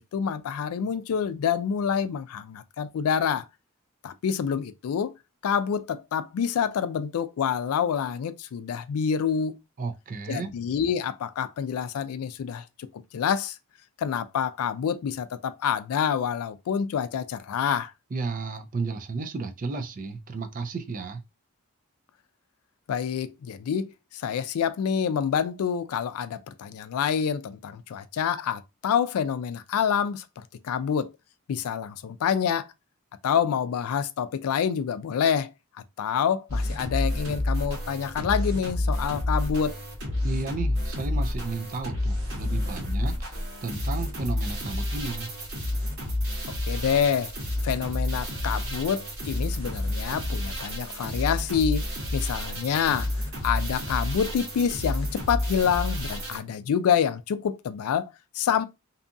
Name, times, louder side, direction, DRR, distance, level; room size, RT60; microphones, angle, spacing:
voice 1, 0.0-3.5 4.0-5.1 5.4-9.6 10.3-13.6 14.0-17.9 22.9-31.1 31.5-32.7 33.2-35.5 36.0-39.8 46.6-47.3 47.6-51.9 52.1-53.1 53.4-58.7, left 7 dB, 80° left, 0.3 m, -27 dB
voice 2, 9.8-10.5 18.1-21.2 40.2-45.3, right 3 dB, 40° right, 0.4 m, -33 dB
sound 1, 36.5-56.4, left 1 dB, 55° right, 1.3 m, -30 dB
2.7 x 2.3 x 2.5 m
head